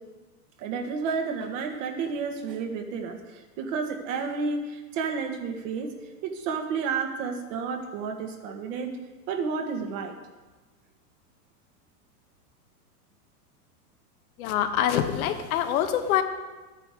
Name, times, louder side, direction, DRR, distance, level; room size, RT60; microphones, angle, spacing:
voice 1, 0.6-3.2 3.6-5.9 6.2-9.0 9.3-10.1, right 5 dB, 55° right, 4 dB, 1.6 m, -31 dB
voice 2, 14.4-16.2, left 10 dB, 65° left, 7 dB, 1.1 m, -25 dB
12.5 x 9.2 x 3.7 m, 1.2 s
hypercardioid pair, 120°, 46 cm